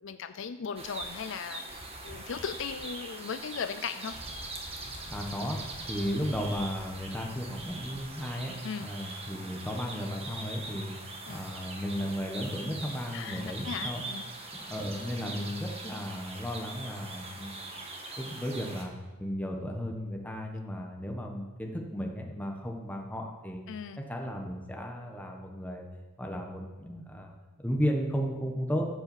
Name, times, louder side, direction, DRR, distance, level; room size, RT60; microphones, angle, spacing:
voice 1, 0.0-4.1 8.6-8.9 11.3-11.4 13.1-14.2 23.7-24.0, left 6 dB, 55° left, 10 dB, 0.4 m, -38 dB
sound 1, 0.8-18.9, right 2 dB, 25° right, 1.4 m, -42 dB
voice 2, 5.1-5.6 5.9-10.9 11.3-14.0 14.5-17.7 18.2-18.9 19.2-23.6 24.0-25.9 26.2-28.8, equal, 5° left, 1 dB, 1.3 m, -34 dB
15.0 x 5.6 x 7.3 m, 1.2 s
head